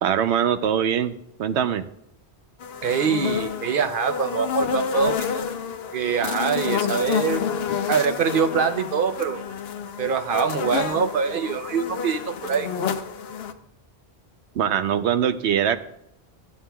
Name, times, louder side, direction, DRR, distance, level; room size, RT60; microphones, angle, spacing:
voice 1, 0.0-1.1 1.4-1.8 14.6-15.8, right 9 dB, 85° right, 11 dB, 0.9 m, -22 dB
sound 1, 2.6-13.5, left 7 dB, 70° left, 0.8 m, -29 dB
voice 2, 2.8-5.4 5.9-7.4 7.9-9.4 10.0-12.7, right 6 dB, 55° right, 8 dB, 0.8 m, -24 dB
13.0 x 8.9 x 2.2 m, 0.79 s
omnidirectional pair, 1.1 m